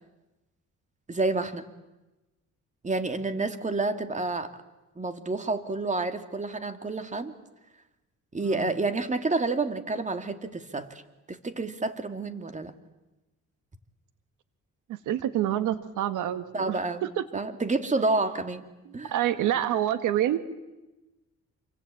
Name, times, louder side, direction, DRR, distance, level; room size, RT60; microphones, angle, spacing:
voice 1, 1.1-1.7 2.8-4.5 5.0-7.3 8.3-11.0 11.3-12.7 16.5-17.1 17.3-18.6 18.9-19.1, right 3 dB, 25° right, 8 dB, 2.4 m, -29 dB
voice 2, 8.4-8.7 14.9-17.2 19.0-20.4, right 12 dB, 85° right, 11 dB, 1.7 m, -27 dB
28.0 x 24.5 x 8.7 m, 1.0 s
cardioid pair, 90°, 30 cm